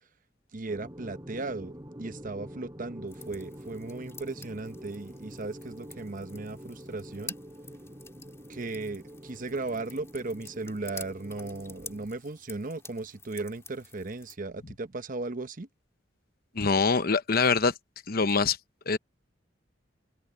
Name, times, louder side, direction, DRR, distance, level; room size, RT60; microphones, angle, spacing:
voice 1, 0.5-7.3 8.5-15.7, right 3 dB, 45° right, 0.9 m, -36 dB
sound 1, 0.7-12.1, equal, 20° right, 7.0 m, -46 dB
sound 2, 3.1-14.4, left 4 dB, 15° left, 3.3 m, -49 dB
voice 2, 16.5-17.7 18.1-18.6 18.9-19.0, left 4 dB, 55° left, 1.0 m, -24 dB
open air
head